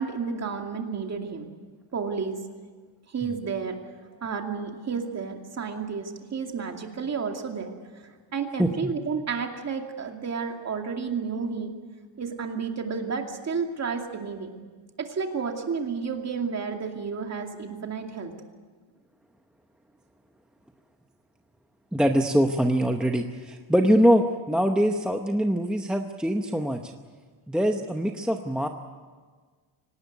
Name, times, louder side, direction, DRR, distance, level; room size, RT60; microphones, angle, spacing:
voice 1, 0.0-1.5 1.9-2.4 3.1-3.8 4.2-7.7 8.3-11.7 12.2-14.5 15.0-18.3, right 5 dB, 30° right, 3 dB, 2.5 m, -31 dB
voice 2, 8.6-8.9 21.9-26.9 27.5-28.7, equal, ahead, 3 dB, 0.8 m, -23 dB
24.5 x 19.0 x 9.4 m, 1.5 s
cardioid pair, 170°, 49 cm